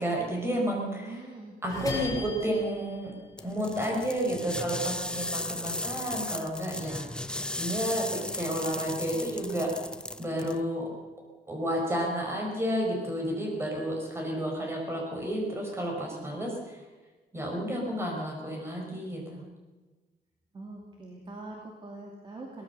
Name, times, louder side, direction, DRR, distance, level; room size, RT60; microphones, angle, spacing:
voice 1, 0.0-1.2 1.6-3.1 3.4-7.1 7.6-9.7 10.2-10.9 11.5-16.8 17.3-19.4, equal, 15° right, 1 dB, 5.1 m, -31 dB
voice 2, 0.8-1.6 20.5-22.6, right 2 dB, 30° right, 0 dB, 2.7 m, -43 dB
sound 1, 1.7-4.1 4.4-6.1 6.4-7.8 8.2-9.3, left 3 dB, 20° left, 5.3 m, -40 dB
sound 2, 3.4-10.6, left 1 dB, 5° left, 0.6 m, -36 dB
23.0 x 18.0 x 6.9 m, 1.3 s
wide cardioid pair, 175°, 16 cm